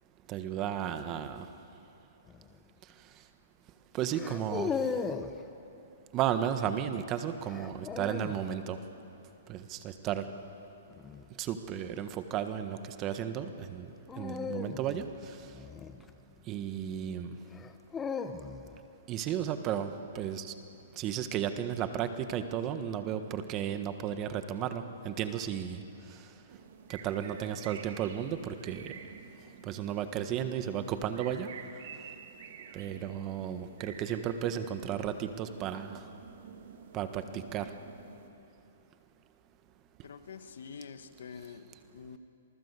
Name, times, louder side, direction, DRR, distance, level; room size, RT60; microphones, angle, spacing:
voice 1, 0.3-1.5 3.9-4.9 6.1-8.8 9.5-10.3 11.4-13.9 14.2-15.5 16.5-17.3 19.1-20.5 20.9-25.8 26.1-26.3 26.9-28.9 29.6-31.5 32.7-36.0 36.9-37.7, right 9 dB, 30° right, 9 dB, 1.4 m, -34 dB
sound 1, 2.3-2.6 4.1-5.4 7.5-8.5 10.9-11.3 14.1-16.5 17.5-18.8, left 5 dB, 15° left, 1.1 m, -37 dB
sound 2, 26.5-38.3, right 7 dB, 65° right, 2.0 m, -50 dB
voice 2, 32.8-33.2 40.0-42.2, left 6 dB, 75° left, 10 dB, 1.4 m, -47 dB
27.5 x 19.5 x 8.3 m, 2.8 s
hypercardioid pair, 140°, 0 cm